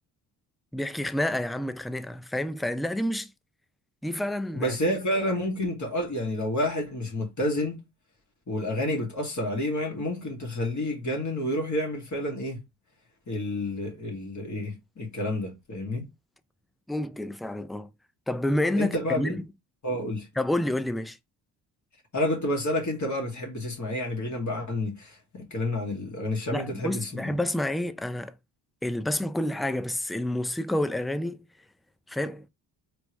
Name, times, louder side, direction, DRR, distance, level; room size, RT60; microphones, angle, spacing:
voice 1, 0.7-3.3 4.0-4.8 16.9-17.9 18.3-19.5 20.4-21.2 26.5-28.3 28.8-31.4 32.1-32.4, left 1 dB, ahead, 0.4 m, -29 dB
voice 2, 4.5-7.8 8.5-12.6 13.3-16.1 18.8-19.4 19.8-20.3 22.1-27.3, left 1 dB, 40° left, 2.4 m, -29 dB
4.2 x 3.3 x 3.1 m
supercardioid pair, 60°, 46 cm